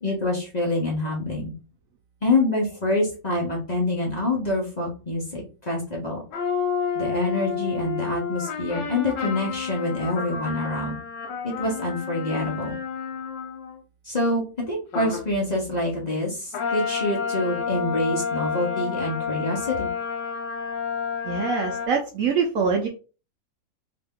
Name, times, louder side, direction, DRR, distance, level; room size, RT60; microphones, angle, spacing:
voice 1, 0.0-1.5 2.2-6.2 6.9-11.0 11.4-12.8 14.0-19.9, left 2 dB, 35° left, -3 dB, 0.6 m, -26 dB
sound 1, 6.3-13.8 14.9-15.3 16.5-21.9, left 6 dB, 85° left, 1.4 m, -30 dB
voice 2, 21.2-22.9, right 5 dB, 70° right, 2 dB, 0.8 m, -24 dB
2.9 x 2.7 x 3.5 m, 0.34 s
omnidirectional pair, 1.9 m